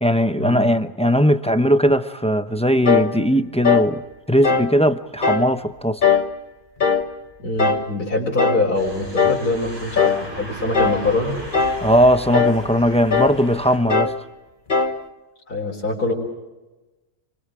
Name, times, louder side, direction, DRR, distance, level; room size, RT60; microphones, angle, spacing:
voice 1, 0.0-4.0 4.3-6.0 11.8-14.1, equal, 5° left, 10 dB, 0.6 m, -18 dB
sound 1, 2.8-3.1 3.6-3.9 4.4-4.7 5.2-5.5 6.0-6.3 6.8-7.1 7.6-7.9 8.4-8.7 9.2-9.5 10.0-10.3 10.7-11.1 11.5-11.9 12.3-12.6 13.1-13.4 13.9-14.2 14.7-15.0, left 5 dB, 35° left, 1.3 m, -19 dB
voice 2, 7.4-11.4 15.5-16.1, left 2 dB, 85° left, -3 dB, 4.6 m, -24 dB
sound 2, 8.7-13.8, right 1 dB, 55° right, 7.5 m, -37 dB
30.0 x 23.5 x 5.0 m, 1.1 s
omnidirectional pair, 1.6 m